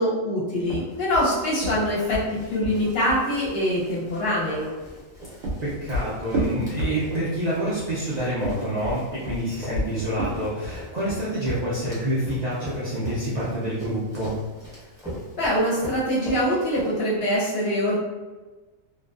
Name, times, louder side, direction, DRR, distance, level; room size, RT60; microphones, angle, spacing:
voice 1, 0.0-4.7 15.4-17.9, equal, 55° left, -6 dB, 0.8 m, -24 dB
sound 1, 0.6-3.3 5.0-7.4 8.3-10.9, equal, 65° right, 0.8 m, -31 dB
Run, 1.1-17.3, equal, 5° right, 0.6 m, -40 dB
voice 2, 5.6-14.3, right 1 dB, 80° right, -7 dB, 0.3 m, -27 dB
2.5 x 2.2 x 2.3 m, 1.2 s
omnidirectional pair, 1.4 m